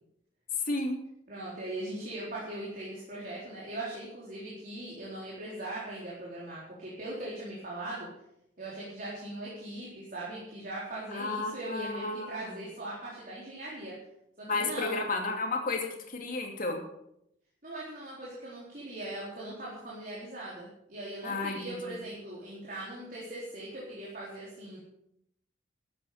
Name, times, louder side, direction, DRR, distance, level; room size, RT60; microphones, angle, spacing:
voice 1, 0.7-1.0 11.1-12.6 14.4-16.8 21.2-22.0, left 3 dB, 45° left, 2 dB, 2.7 m, -33 dB
voice 2, 1.3-8.1 8.6-13.9 14.4-15.0 17.6-24.8, right 1 dB, 45° right, -6 dB, 3.9 m, -40 dB
14.0 x 9.2 x 6.7 m, 0.78 s
head